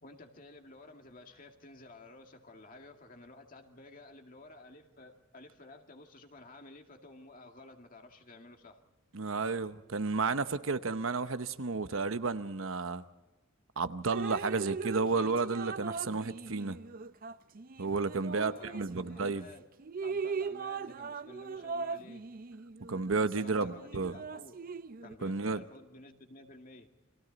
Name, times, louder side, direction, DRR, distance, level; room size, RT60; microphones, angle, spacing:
voice 1, 0.0-8.8 18.2-19.7 20.0-22.3 23.4-24.6 25.0-26.9, left 2 dB, 45° left, 2.2 m, -53 dB
voice 2, 9.1-13.0 13.8-16.8 17.8-19.4 22.9-24.1 25.2-25.6, right 4 dB, 80° right, 0.9 m, -32 dB
Drip, 14.1-19.4 19.8-25.1, right 5 dB, 45° right, 0.6 m, -40 dB
30.0 x 23.0 x 4.1 m
head